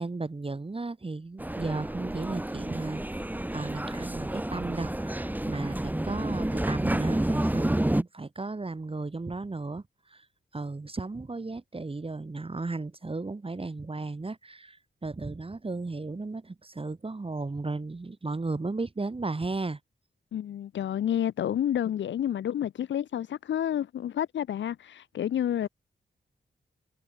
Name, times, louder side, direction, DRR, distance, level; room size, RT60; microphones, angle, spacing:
voice 1, 0.0-3.2 3.5-10.3 10.5-19.8, right 3 dB, 30° right, 2.7 m, -35 dB
sound 1, 1.4-8.0, right 1 dB, 10° right, 1.4 m, -30 dB
voice 2, 20.3-25.7, left 10 dB, 90° left, 0.5 m, -29 dB
wide cardioid pair, 85°, 19 cm